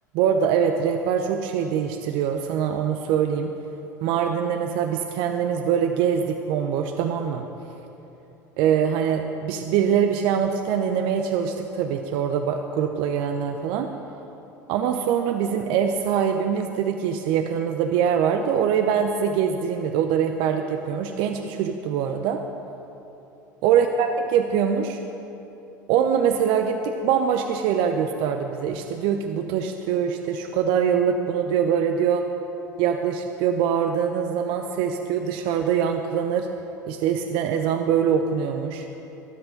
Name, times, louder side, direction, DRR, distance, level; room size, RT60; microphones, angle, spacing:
voice 1, 0.1-3.5 4.0-7.4 8.6-13.9 14.7-22.4 23.6-25.0 25.9-32.2 32.8-36.5 36.9-38.9, right 8 dB, 60° right, 5 dB, 0.7 m, -23 dB
23.0 x 8.0 x 3.9 m, 2.9 s
hypercardioid pair, 75°, 10 cm